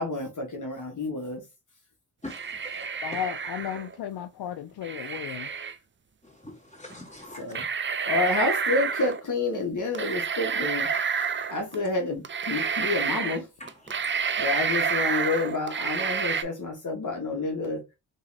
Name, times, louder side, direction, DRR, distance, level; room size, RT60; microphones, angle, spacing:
voice 1, 0.0-1.4 7.4-7.6 8.1-10.9 11.5-13.4 14.4-17.8, left 3 dB, 45° left, 1.3 m, -29 dB
voice 2, 2.2-2.8 6.2-7.6 13.6-14.5, left 1 dB, 15° left, 2.5 m, -44 dB
sound 1, 2.3-3.9 4.8-5.7 6.9-7.0 7.5-9.2 9.9-11.8 12.2-13.4 13.7-16.4, right 6 dB, 30° right, 0.5 m, -29 dB
voice 3, 3.0-5.5, left 10 dB, 65° left, 0.5 m, -34 dB
3.8 x 3.1 x 2.7 m
cardioid pair, 50°, 41 cm